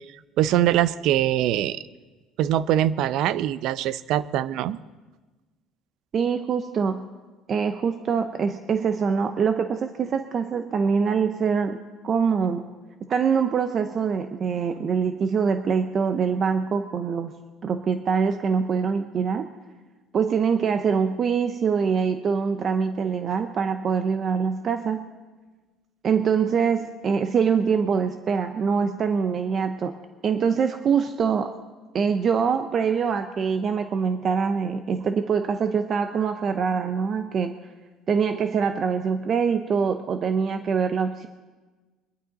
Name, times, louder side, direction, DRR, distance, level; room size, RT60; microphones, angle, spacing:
voice 1, 0.4-1.8 2.4-4.8, right 12 dB, 70° right, 16 dB, 0.5 m, -23 dB
voice 2, 6.1-7.1 7.5-12.7 13.1-17.3 17.6-19.5 20.1-25.0 26.0-30.0 30.2-31.5 31.9-37.5 38.1-41.3, right 6 dB, 40° right, 8 dB, 0.7 m, -24 dB
22.0 x 11.5 x 4.1 m, 1.3 s
cardioid pair, 120°, 0 cm